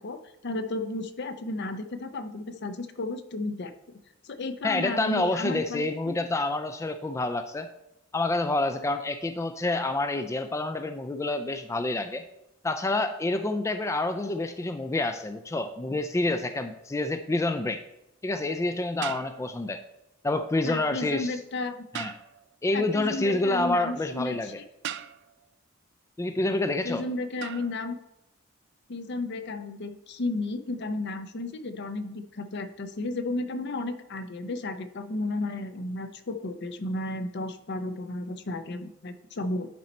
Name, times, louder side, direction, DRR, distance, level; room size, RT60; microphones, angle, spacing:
voice 1, 0.0-4.0 4.2-6.2 20.6-21.8 22.7-24.5 26.8-28.0 28.9-39.7, left 2 dB, 55° left, 9 dB, 0.7 m, -33 dB
voice 2, 4.6-7.7 8.1-12.2 12.6-17.8 18.2-19.8 20.2-21.4 21.9-22.1 22.6-24.6 26.2-27.1, left 2 dB, 15° left, 8 dB, 0.3 m, -28 dB
sound 1, 16.5-16.7 19.0-19.8 21.9-22.6 24.8-25.5 27.4-27.8, right 10 dB, 60° right, 0.4 m, -39 dB
10.5 x 4.1 x 4.3 m, 0.87 s
head